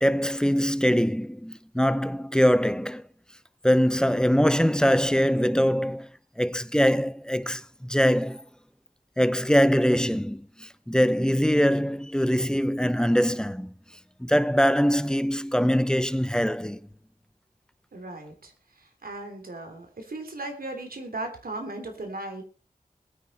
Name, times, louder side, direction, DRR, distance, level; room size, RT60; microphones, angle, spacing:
voice 1, 0.0-3.1 3.6-6.1 6.4-8.4 9.2-13.7 14.2-16.8, equal, 5° left, 0.9 m, -23 dB
voice 2, 17.9-22.4, right 2 dB, 85° right, 3.4 m, -37 dB
21.0 x 9.4 x 4.3 m
wide cardioid pair, 50°, 15 cm